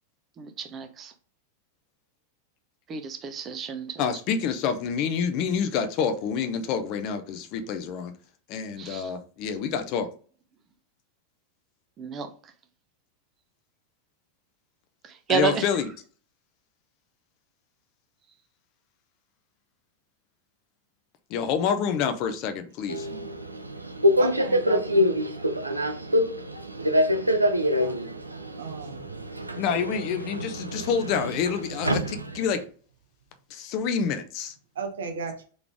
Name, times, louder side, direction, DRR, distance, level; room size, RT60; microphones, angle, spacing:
voice 1, 0.4-1.1 2.9-4.0 8.8-9.1 12.0-12.3 15.0-15.6, right 5 dB, 25° right, 0.7 m, -30 dB
voice 2, 4.0-8.1 8.5-10.1 15.3-15.9 21.3-23.1 29.6-32.6 33.5-34.5, left 7 dB, 40° left, 0.7 m, -27 dB
Subway metro underground, 22.9-32.6, equal, 85° right, 0.4 m, -26 dB
voice 3, 24.2-25.0 27.8-28.0 28.6-29.2 34.8-35.4, right 5 dB, 65° right, 0.9 m, -35 dB
3.9 x 3.4 x 3.4 m
figure-of-eight pair, 90°, 0 cm